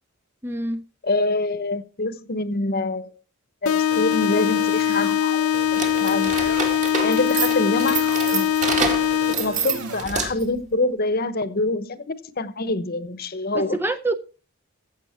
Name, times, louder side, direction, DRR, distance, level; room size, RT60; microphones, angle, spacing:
voice 1, 0.4-0.8 13.5-14.2, right 2 dB, 10° right, 0.5 m, -26 dB
voice 2, 1.0-3.1 3.6-6.6 7.0-8.0 8.3-8.5 9.4-13.8, left 2 dB, 45° left, 1.0 m, -26 dB
sound 1, 3.7-9.7, left 9 dB, 70° left, 0.6 m, -22 dB
sound 2, 3.9-5.1 5.5-6.8 7.2-8.4 8.8-10.0, right 3 dB, 85° right, 1.9 m, -37 dB
sound 3, 5.7-10.6, right 5 dB, 35° right, 2.1 m, -28 dB
15.0 x 7.5 x 4.5 m
head